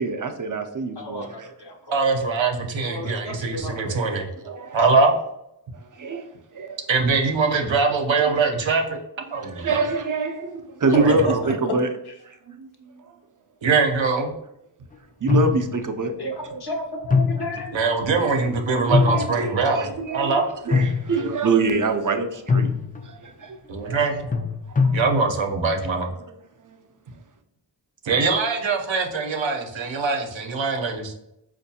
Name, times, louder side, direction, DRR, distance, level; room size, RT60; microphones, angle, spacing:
voice 1, 0.0-1.2 4.5-4.9 6.0-6.2 6.5-6.8 7.7-7.8 8.2-8.4 9.3-11.2 11.6-11.9 12.2-12.7 15.2-16.1 18.3-18.5 18.8-22.7 23.0-23.6 23.8-24.0, right 3 dB, 45° right, 6 dB, 0.4 m, -25 dB
voice 2, 1.0-2.1 2.8-4.5 11.2-11.7 12.1-12.2 16.2-17.7 19.1-19.3, left 1 dB, 60° left, 2 dB, 0.8 m, -33 dB
voice 3, 1.9-4.3 4.7-5.1 6.9-9.0 9.3-9.8 10.9-11.4 13.6-14.3 17.7-19.9 20.1-20.4 23.7-24.2 24.9-26.1 28.0-31.1, right 4 dB, 85° right, 3 dB, 0.7 m, -22 dB
sound 1, 15.3-16.1 17.1-17.8 18.2-18.3 18.9-19.6 20.7-21.5 21.8-22.1 22.5-23.2 24.3-25.0, left 4 dB, 20° left, 0.3 m, -22 dB
4.4 x 2.5 x 2.7 m, 0.82 s
wide cardioid pair, 45°, 44 cm